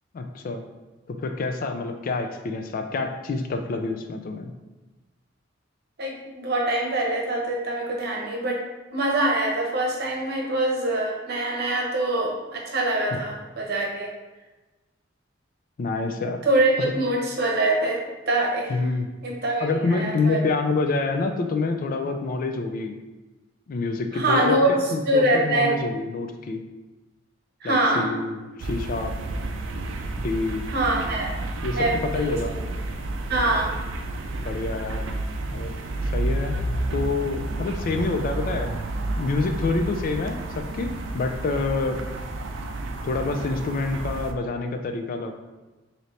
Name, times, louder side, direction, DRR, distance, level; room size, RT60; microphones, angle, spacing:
voice 1, 0.1-0.6 1.1-4.5 13.1-13.2 15.8-16.4 16.8-16.9 18.7-19.1 19.6-23.0 23.7-26.6 27.6-29.1 30.2-30.7 31.6-32.5 34.4-35.1 35.5-35.7 36.1-36.6 36.9-38.7 39.2-42.0 43.0-45.3, left 3 dB, 45° left, 5 dB, 0.3 m, -27 dB
voice 2, 6.0-8.6 8.9-14.1 16.4-18.0 18.3-18.7 19.2-20.4 24.1-25.7 27.6-28.1 30.7-31.3 31.8-32.4 33.3-33.7, right 1 dB, 55° right, -1 dB, 0.8 m, -24 dB
sound 1, 28.6-44.3, right 2 dB, 75° right, 0.4 m, -31 dB
3.2 x 2.8 x 4.0 m, 1.2 s
head